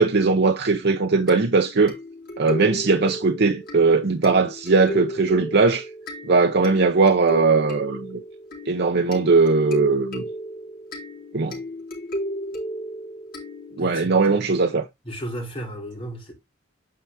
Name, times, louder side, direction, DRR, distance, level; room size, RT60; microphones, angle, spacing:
voice 1, 0.0-2.0 2.4-5.9 6.3-8.2 8.7-10.2 11.3-11.6 13.8-14.8, right 4 dB, 60° right, 0.8 m, -19 dB
sound 1, 1.3-14.0, equal, 50° left, 3.0 m, -34 dB
voice 2, 13.8-14.5 15.0-16.3, right 1 dB, 30° left, 3.2 m, -34 dB
8.7 x 4.7 x 3.5 m
head